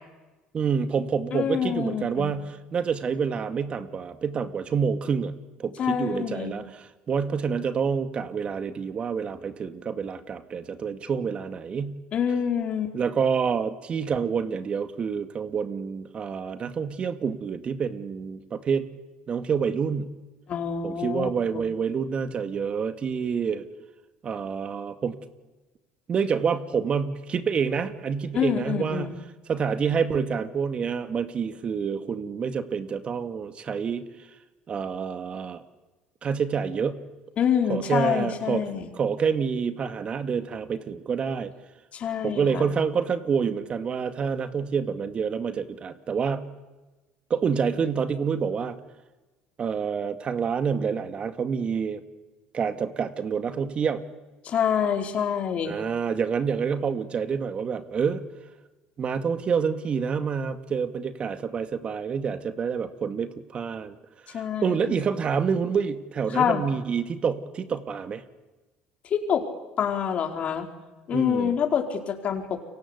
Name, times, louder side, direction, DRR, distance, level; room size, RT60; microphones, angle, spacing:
voice 1, 0.5-5.3 5.6-12.0 12.9-18.9 19.3-20.1 20.8-23.6 24.2-25.2 26.1-29.1 29.5-34.0 34.7-35.6 36.2-37.0 37.7-38.6 38.9-41.5 42.2-46.5 47.3-48.8 49.6-52.0 52.5-54.0 55.7-58.2 59.0-64.0 64.3-68.2 71.1-71.5, right 6 dB, 40° right, 10 dB, 2.2 m, -27 dB
voice 2, 1.3-2.3 5.8-6.6 12.1-12.9 20.5-21.7 28.3-29.2 37.4-38.9 41.9-42.7 54.4-55.7 64.3-65.0 66.3-66.6 69.0-69.4 69.8-70.7 71.1-72.7, left 8 dB, 50° left, 4 dB, 4.6 m, -26 dB
29.5 x 24.0 x 8.3 m, 1.1 s
supercardioid pair, 80°, 3 cm